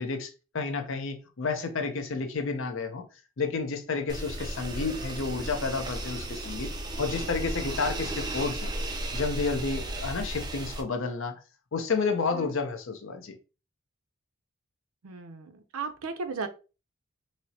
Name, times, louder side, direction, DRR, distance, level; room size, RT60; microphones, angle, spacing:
voice 1, 0.0-3.0 3.4-6.7 7.0-8.7 9.1-11.4 11.7-13.3, left 4 dB, 60° left, 0.6 m, -31 dB
sound 1, 4.1-10.8, right 1 dB, 20° right, 0.4 m, -34 dB
voice 2, 15.0-16.5, right 4 dB, 80° right, 0.5 m, -36 dB
4.2 x 2.0 x 2.7 m
head